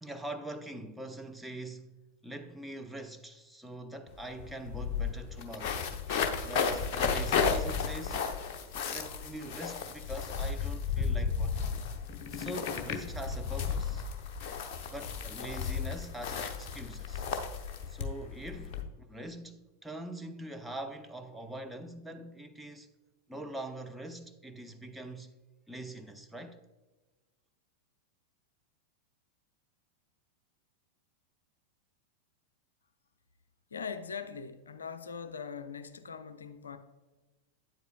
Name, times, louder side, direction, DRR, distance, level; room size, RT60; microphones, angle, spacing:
voice 1, 0.0-1.9 2.2-5.8 6.4-8.2 8.8-11.7 12.3-14.0 14.9-17.3 17.9-22.9 23.3-25.3 25.7-26.6, right 1 dB, 5° right, 0.6 m, -43 dB
sound 1, 4.1-4.2 4.4-18.8, left 6 dB, 45° left, 0.8 m, -33 dB
voice 2, 33.7-36.8, left 6 dB, 70° left, 0.5 m, -41 dB
9.1 x 8.0 x 2.3 m
figure-of-eight pair, 90°, 0 cm